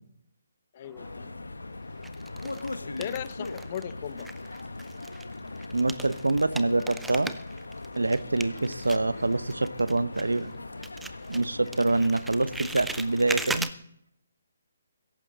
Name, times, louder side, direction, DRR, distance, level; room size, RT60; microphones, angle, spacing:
voice 1, 0.7-1.4 2.8-4.3, left 9 dB, 40° left, 15 dB, 0.9 m, -37 dB
sound 1, 0.8-1.5 2.0-3.9 4.2-10.6 10.8-13.7, right 2 dB, 5° right, 0.6 m, -39 dB
sound 2, 1.0-13.5, left 2 dB, 80° left, 1.3 m, -40 dB
voice 2, 5.7-7.4 7.9-10.5 11.3-13.7, right 2 dB, 80° right, 16 dB, 0.9 m, -26 dB
17.0 x 14.5 x 4.1 m, 0.72 s
figure-of-eight pair, 140°, 0 cm